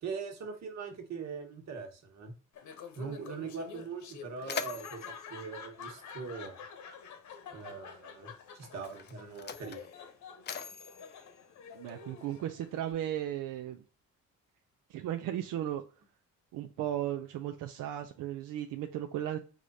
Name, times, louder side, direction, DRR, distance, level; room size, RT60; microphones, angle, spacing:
voice 1, 0.0-2.3 3.0-6.6 7.5-9.9, right 5 dB, 60° right, 3 dB, 1.3 m, -41 dB
Laughter, 2.5-12.9, left 6 dB, 65° left, 1.0 m, -48 dB
Mechanisms, 4.0-6.7 7.7-7.9 8.7-12.3, left 7 dB, 35° left, 0.4 m, -43 dB
voice 2, 11.7-13.8 14.9-15.8 16.5-19.4, right 11 dB, 85° right, 5 dB, 0.5 m, -35 dB
4.8 x 2.5 x 4.0 m, 0.36 s
cardioid pair, 130°, 31 cm